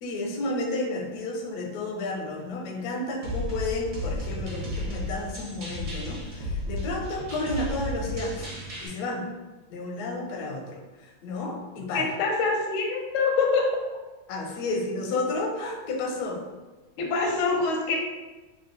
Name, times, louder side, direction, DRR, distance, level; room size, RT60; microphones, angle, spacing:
voice 1, 0.0-8.5 8.8-9.3 9.7-12.1 14.3-16.4, left 2 dB, 70° left, 1 dB, 0.9 m, -31 dB
sound 1, 3.2-8.9, left 1 dB, 60° right, 1.4 m, -33 dB
voice 2, 11.9-13.6 17.0-18.0, left 4 dB, 90° left, 1 dB, 1.5 m, -25 dB
3.7 x 2.3 x 3.7 m, 1.2 s
omnidirectional pair, 2.2 m